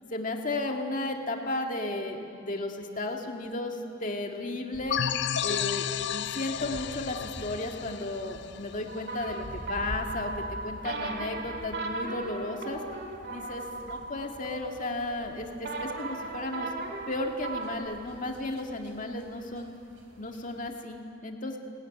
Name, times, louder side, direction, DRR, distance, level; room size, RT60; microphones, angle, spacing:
voice 1, 0.1-5.0 5.4-12.8 13.3-16.7 17.1-19.7 20.2-21.6, left 2 dB, 40° left, 2 dB, 2.0 m, -34 dB
sound 1, 4.7-20.8, equal, 85° right, 3.6 m, -48 dB
sound 2, 4.9-9.4, left 9 dB, 60° left, 0.5 m, -32 dB
sound 3, 8.9-17.8, right 3 dB, 55° right, 2.0 m, -37 dB
19.5 x 18.5 x 9.7 m, 2.5 s
head